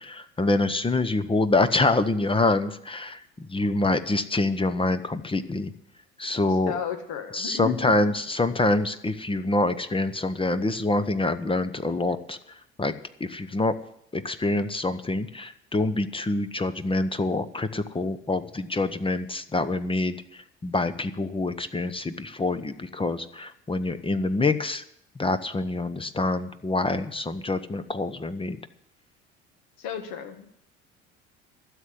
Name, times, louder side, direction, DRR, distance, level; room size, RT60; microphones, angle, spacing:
voice 1, 0.0-5.7 6.2-6.7 7.3-12.9 13.2-13.7 14.1-24.8 25.2-28.6, left 2 dB, 15° left, 12 dB, 0.9 m, -26 dB
voice 2, 6.7-7.9 29.8-30.5, left 7 dB, 60° left, 6 dB, 2.0 m, -33 dB
12.5 x 7.6 x 9.8 m, 0.72 s
figure-of-eight pair, 60°, 34 cm